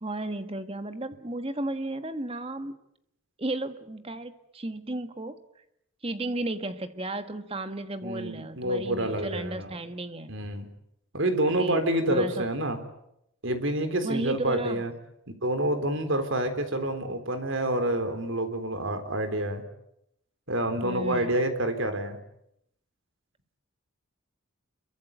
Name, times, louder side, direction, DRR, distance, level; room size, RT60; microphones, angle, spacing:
voice 1, 0.0-2.8 3.4-5.4 6.0-10.4 11.6-11.8 12.1-12.4 14.0-14.8 20.8-21.4, right 2 dB, 25° right, 9 dB, 1.5 m, -34 dB
voice 2, 8.0-9.8 10.3-10.7 11.1-12.8 13.4-14.9 15.4-19.6 20.5-22.2, right 1 dB, 60° right, 8 dB, 3.7 m, -28 dB
27.0 x 23.0 x 8.4 m, 0.79 s
head